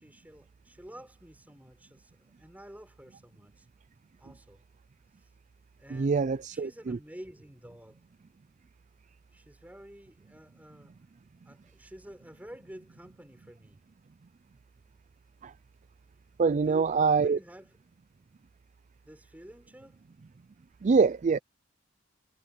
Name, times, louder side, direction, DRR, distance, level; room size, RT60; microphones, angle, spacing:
voice 1, 0.0-3.7 4.2-4.6 5.2-5.3 5.8-8.0 9.3-11.0 11.4-13.8 16.6-17.8 19.1-20.0, equal, 10° right, 4.3 m, -50 dB
voice 2, 5.9-7.0 15.4-15.5 16.4-17.4 20.8-21.4, right 5 dB, 40° right, 0.4 m, -25 dB
head